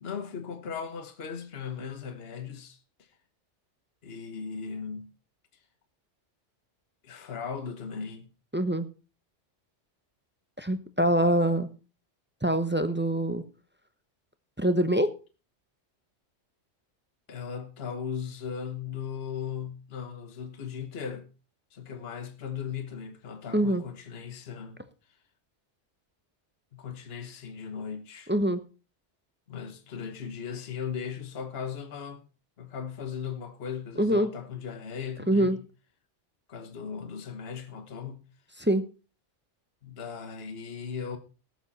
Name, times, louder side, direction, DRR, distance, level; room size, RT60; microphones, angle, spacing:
voice 1, 0.0-3.1 4.0-5.1 7.0-8.3 17.3-21.3 21.7-24.8 26.7-28.3 29.5-32.2 32.6-35.6 36.5-38.2 39.8-41.2, left 7 dB, 55° left, 1.4 m, -37 dB
voice 2, 8.5-8.9 10.6-11.7 12.4-13.4 14.6-15.1 23.5-23.8 28.3-28.6 34.0-34.3 35.3-35.6 38.6-38.8, right 1 dB, 10° right, 0.7 m, -24 dB
18.5 x 7.3 x 4.1 m
omnidirectional pair, 1.2 m